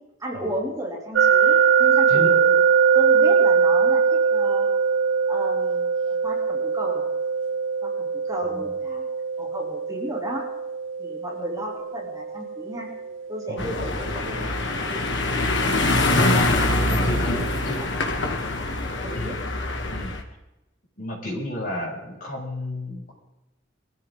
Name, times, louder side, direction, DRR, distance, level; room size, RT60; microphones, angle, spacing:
voice 1, 0.2-2.6 2.9-4.7 5.3-7.1 7.8-9.0 9.4-10.5 11.0-12.9 13.3-16.1 16.7-18.0 19.0-19.4, right 1 dB, 15° right, -1 dB, 3.2 m, -34 dB
sound 1, 1.2-14.1, right 6 dB, 85° right, 1.3 m, -22 dB
voice 2, 13.5-13.8 16.9-17.8 19.1-19.4 19.9-20.1 21.0-23.1, left 1 dB, 45° left, -4 dB, 7.2 m, -32 dB
sound 2, 13.6-20.2, left 2 dB, 70° left, 2.2 m, -24 dB
23.0 x 14.5 x 3.9 m, 0.95 s
head